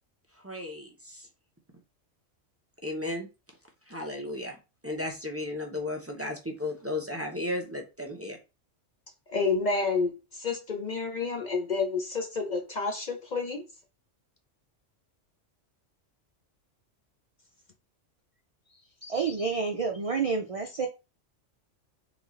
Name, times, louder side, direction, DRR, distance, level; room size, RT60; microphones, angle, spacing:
voice 1, 0.4-1.3 2.8-3.3 3.9-4.6 4.8-8.4, left 1 dB, 15° right, 0.6 m, -34 dB
voice 2, 9.3-13.6, left 4 dB, 45° left, 0.6 m, -29 dB
voice 3, 19.0-20.9, right 5 dB, 65° right, 0.3 m, -29 dB
3.9 x 3.3 x 3.1 m
omnidirectional pair, 1.3 m